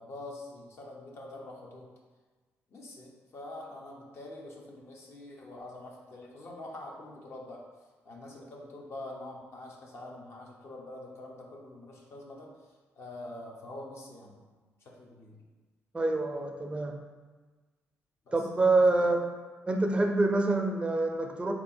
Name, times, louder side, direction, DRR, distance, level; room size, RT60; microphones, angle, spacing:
voice 1, 0.0-1.9 2.7-7.6 8.0-12.5 13.0-14.5 14.8-15.4 18.3-19.2, left 2 dB, 55° left, -1 dB, 0.9 m, -45 dB
voice 2, 15.9-16.9 18.3-19.2 19.7-21.5, right 2 dB, 20° right, 3 dB, 0.5 m, -26 dB
3.8 x 3.0 x 4.3 m, 1.3 s
cardioid pair, 85°, 5 cm